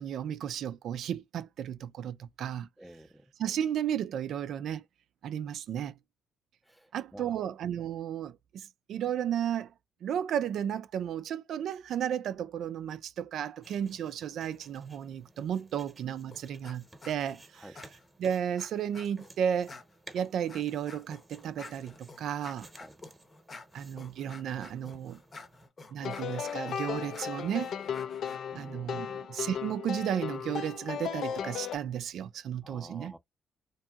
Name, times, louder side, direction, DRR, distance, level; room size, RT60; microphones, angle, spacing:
voice 1, 0.0-2.7 3.4-4.8 5.2-6.0 6.9-9.7 10.0-17.7 18.2-19.7 20.1-22.7 23.7-25.2 25.9-27.7 28.5-33.1, right 9 dB, 75° right, 0.3 m, -33 dB
voice 2, 2.8-3.3 6.6-7.4 17.5-17.8 22.8-23.0 28.5-29.0 32.6-33.2, equal, ahead, 0.5 m, -50 dB
sound 1, 13.6-25.7, right 2 dB, 20° right, 0.9 m, -56 dB
sound 2, 16.3-16.8 17.0-17.4 17.8-19.3 19.7-28.4, left 3 dB, 40° left, 0.7 m, -50 dB
sound 3, 26.0-31.8, left 8 dB, 70° left, 0.3 m, -36 dB
2.8 x 2.6 x 2.3 m
cardioid pair, 90°, 0 cm